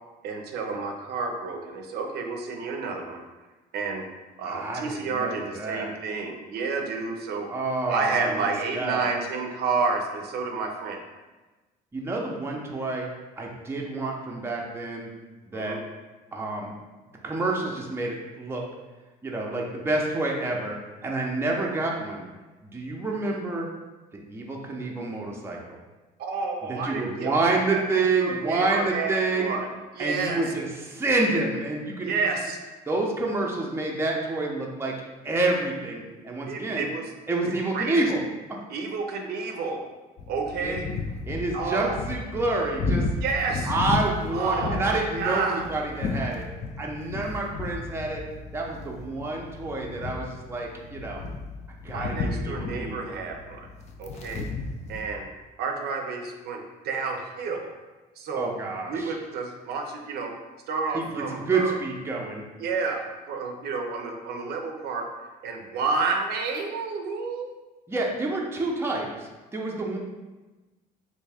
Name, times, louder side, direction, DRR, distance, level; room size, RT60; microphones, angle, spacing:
voice 1, 0.2-3.2 3.7-4.1 4.4-7.6 7.9-11.0 15.5-15.8 26.2-30.4 32.0-32.6 36.5-37.1 37.7-38.0 38.7-39.8 40.3-40.9 41.5-42.0 43.2-43.7 44.3-45.6 51.9-53.7 54.0-54.5 54.9-55.3 55.6-57.7 58.2-58.5 58.9-60.4 60.7-61.7 62.6-65.1 65.4-67.5, right 4 dB, 70° right, 3 dB, 0.5 m, -30 dB
voice 2, 4.4-5.9 7.5-9.0 11.9-13.1 13.4-15.1 15.5-15.8 16.3-16.7 17.2-18.6 19.2-20.8 21.0-22.2 22.6-23.7 24.1-25.8 26.7-29.5 30.0-32.3 32.9-34.9 35.2-36.9 37.3-38.2 38.5-38.6 40.6-40.9 41.2-43.1 43.6-46.5 46.8-48.2 48.5-51.2 51.8-53.1 58.4-59.2 60.9-62.5 67.9-70.0, right 2 dB, 15° right, -1 dB, 0.6 m, -28 dB
sound 1, 40.2-55.0, left 3 dB, 40° left, 0.4 m, -33 dB
3.3 x 2.6 x 3.4 m, 1.2 s
cardioid pair, 110°, 17 cm